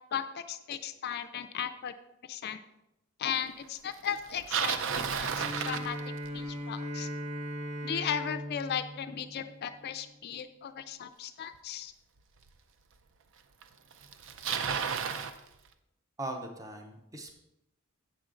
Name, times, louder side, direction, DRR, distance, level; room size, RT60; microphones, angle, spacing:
voice 1, 0.1-1.9 2.2-2.6 3.2-6.0 6.3-7.1 7.8-11.9, left 8 dB, 45° left, 10 dB, 0.4 m, -36 dB
Bicycle, 4.2-6.5 11.6-11.7 12.5-12.6 13.6-13.7 13.9-15.4, right 6 dB, 60° right, 0.5 m, -32 dB
Bowed string instrument, 5.2-10.2, equal, 90° right, 1.0 m, -39 dB
voice 2, 16.2-17.3, right 2 dB, 15° right, 3 dB, 0.7 m, -40 dB
8.0 x 6.1 x 3.8 m, 0.89 s
head